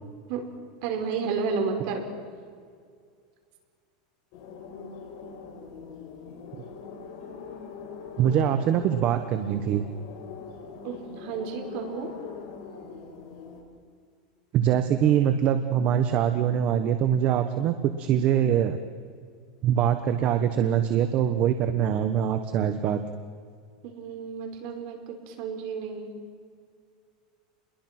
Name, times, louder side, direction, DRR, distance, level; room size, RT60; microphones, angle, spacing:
voice 1, 0.8-2.0 10.8-12.1 23.8-26.1, right 5 dB, 55° right, 3 dB, 5.0 m, -31 dB
sound 1, 4.3-13.6, left 5 dB, 55° left, 5.6 m, -42 dB
voice 2, 8.2-9.8 14.5-18.8 19.6-23.0, right 9 dB, 40° right, 8 dB, 1.2 m, -23 dB
29.5 x 22.0 x 6.1 m, 2.1 s
supercardioid pair, 150°, 4 cm